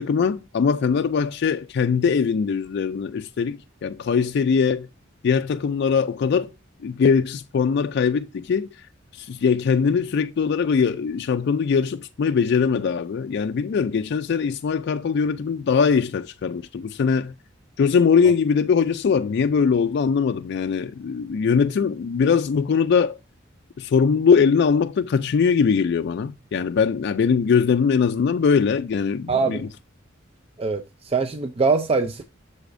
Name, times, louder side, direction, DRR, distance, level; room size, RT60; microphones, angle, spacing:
voice 1, 0.0-4.9 5.2-6.5 6.8-8.7 9.1-17.3 17.8-23.2 23.8-29.7, left 6 dB, 55° left, 0.3 m, -21 dB
voice 2, 29.3-29.6 30.6-32.2, right 4 dB, 30° right, 0.5 m, -23 dB
8.0 x 6.9 x 2.6 m
head